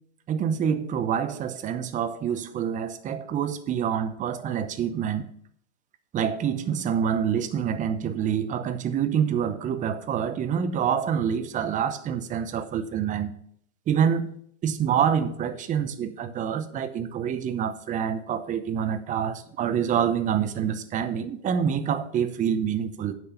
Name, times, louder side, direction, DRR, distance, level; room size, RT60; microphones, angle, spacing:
voice 1, 0.3-5.3 6.1-13.3 13.9-14.3 14.6-23.1, right 8 dB, 20° right, 10 dB, 0.8 m, -26 dB
8.5 x 6.2 x 6.9 m, 0.66 s
hypercardioid pair, 130°, 36 cm